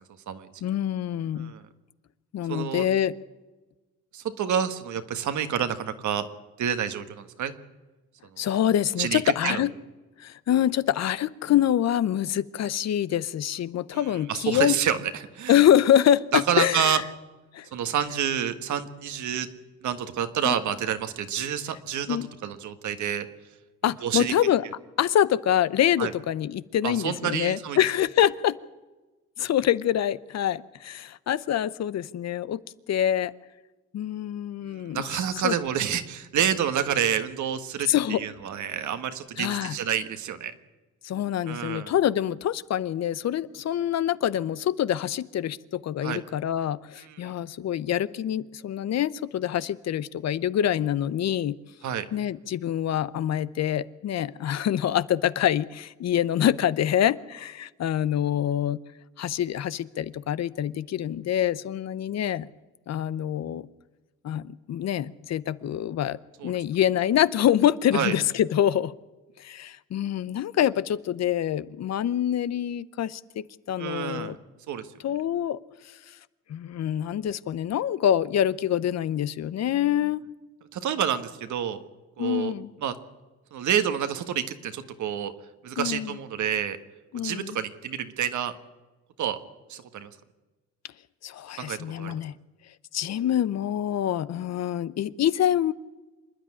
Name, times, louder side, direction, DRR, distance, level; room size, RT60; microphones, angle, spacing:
voice 1, 0.6-1.5 2.3-3.1 8.4-9.7 10.2-14.8 15.5-17.0 17.5-17.7 20.4-20.5 22.1-22.3 23.8-24.6 25.0-28.6 29.4-32.6 32.9-33.3 33.9-35.6 37.9-38.2 39.4-39.8 41.0-51.6 52.1-58.8 59.2-62.5 62.9-63.7 64.2-66.2 66.4-68.9 69.4-74.4 75.0-75.6 76.1-76.2 76.5-80.2 82.2-82.7 85.8-86.2 87.1-87.6 91.2-92.4 92.9-95.7, left 11 dB, 60° left, 17 dB, 0.8 m, -25 dB
voice 2, 2.5-2.9 4.1-6.3 6.6-7.5 9.0-9.6 13.9-15.6 16.3-17.0 17.7-19.5 19.8-23.3 24.0-24.3 26.0-26.1 26.8-27.8 34.6-40.5 41.5-41.9 46.0-46.2 47.0-47.3 51.8-52.0 66.4-66.5 67.9-68.1 73.8-74.4 74.7-74.9 80.7-81.8 82.2-82.5 82.8-82.9 83.5-85.3 85.6-86.8 87.2-88.5 89.2-89.4 89.7-90.1 91.6-92.2, right 9 dB, 70° right, 9 dB, 1.6 m, -28 dB
26.0 x 10.5 x 9.8 m, 1.2 s
cardioid pair, 90°, 30 cm